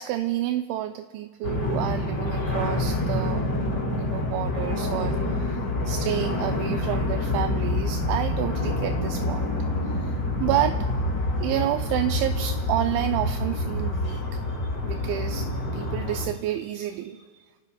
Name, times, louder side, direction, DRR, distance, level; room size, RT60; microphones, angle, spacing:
voice 1, 0.0-3.4 4.0-9.5 10.0-10.7 11.4-14.2 14.8-17.2, right 12 dB, 85° right, 6 dB, 2.8 m, -29 dB
sound 1, 1.4-16.3, left 1 dB, 20° left, 3.6 m, -27 dB
28.0 x 18.0 x 2.3 m, 1.4 s
omnidirectional pair, 5.5 m